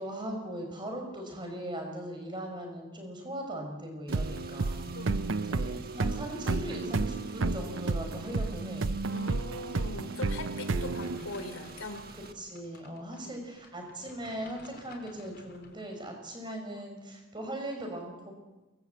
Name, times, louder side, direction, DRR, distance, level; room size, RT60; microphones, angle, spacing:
voice 1, 0.0-4.9 5.5-8.9 12.4-18.3, right 1 dB, 20° right, 3 dB, 5.5 m, -39 dB
Car / Engine, 4.1-12.3, right 3 dB, 45° right, 1.5 m, -49 dB
sound 1, 4.1-11.7, right 3 dB, 60° right, 0.7 m, -32 dB
voice 2, 4.9-5.3 9.1-12.1 16.4-16.9, left 2 dB, 70° left, 9 dB, 3.3 m, -41 dB
sound 2, 10.8-15.8, left 3 dB, 45° left, 3.8 m, -54 dB
23.0 x 20.0 x 8.2 m, 1.1 s
head